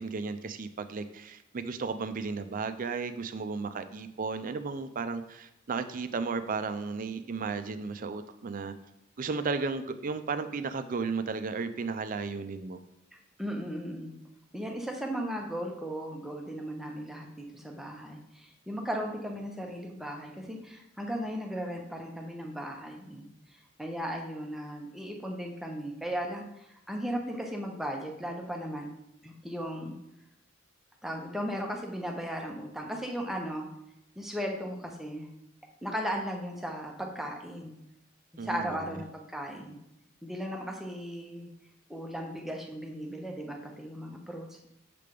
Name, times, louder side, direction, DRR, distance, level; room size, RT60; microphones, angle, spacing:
voice 1, 0.0-8.7 9.2-12.8 38.4-39.0, right 4 dB, 40° right, 10 dB, 0.4 m, -34 dB
voice 2, 13.4-14.1 14.5-23.3 23.8-28.9 29.2-29.9 31.0-33.7 34.2-35.3 35.8-37.7 38.3-39.8 40.2-41.5 41.9-44.7, equal, ahead, 1 dB, 0.7 m, -36 dB
6.7 x 3.4 x 5.2 m, 0.83 s
head